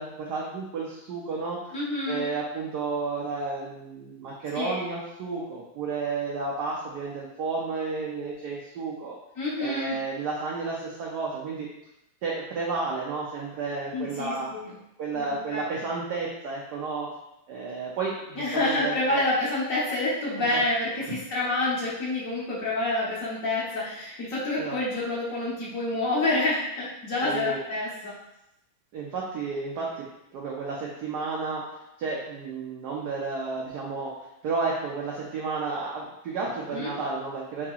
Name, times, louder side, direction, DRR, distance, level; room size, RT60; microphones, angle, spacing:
voice 1, 0.0-1.7 2.1-9.2 9.6-11.7 12.2-14.5 15.0-17.1 17.5-19.2 20.4-20.6 24.6-24.8 27.2-27.6 28.9-30.1 30.3-31.6 32.0-34.1 34.4-37.7, right 4 dB, 85° right, -3 dB, 0.9 m, -32 dB
voice 2, 1.7-2.3 4.5-4.8 9.4-10.0 13.9-14.8 15.1-15.7 18.4-28.1 36.7-36.9, left 2 dB, 55° left, -6 dB, 1.0 m, -28 dB
4.7 x 2.8 x 2.3 m, 0.86 s
omnidirectional pair, 2.4 m